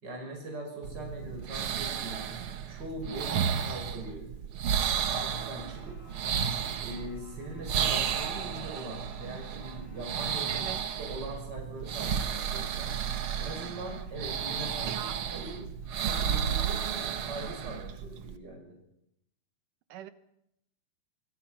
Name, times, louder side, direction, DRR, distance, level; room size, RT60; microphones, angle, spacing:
voice 1, 0.0-2.2 2.7-4.3 5.1-6.0 6.8-10.7 11.0-13.0 13.4-15.7 16.0-18.8, right 1 dB, 30° right, 1 dB, 6.4 m, -41 dB
sound 1, 0.8-18.4, right 8 dB, 60° right, 1.5 m, -33 dB
sound 2, 5.7-10.7, left 3 dB, 60° left, 8.5 m, -58 dB
voice 2, 10.5-10.8 14.8-15.2 19.9-20.1, right 11 dB, 85° right, 12 dB, 2.7 m, -40 dB
24.0 x 23.0 x 5.8 m, 0.79 s
omnidirectional pair, 3.7 m